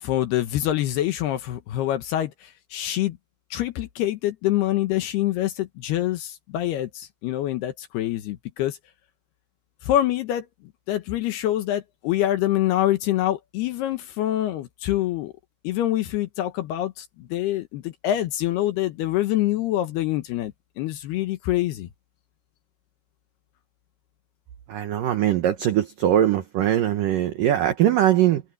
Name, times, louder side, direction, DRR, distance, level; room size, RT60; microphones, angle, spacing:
voice 1, 0.0-3.2 3.5-8.8 9.8-10.5 10.9-15.3 15.6-21.9, left 13 dB, 70° left, 2.7 m, -25 dB
voice 2, 24.7-28.4, right 11 dB, 85° right, 1.9 m, -21 dB
open air
omnidirectional pair, 5.5 m